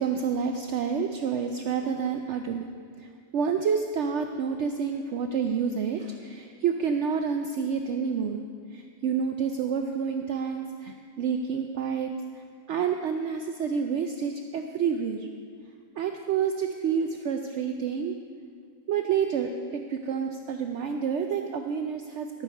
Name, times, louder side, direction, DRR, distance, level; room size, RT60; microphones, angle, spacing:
voice 1, 0.0-2.6 3.0-8.4 8.7-15.3 16.0-18.1 18.9-22.4, right 6 dB, 65° right, 5 dB, 0.8 m, -29 dB
12.0 x 9.0 x 4.6 m, 2.2 s
omnidirectional pair, 1.4 m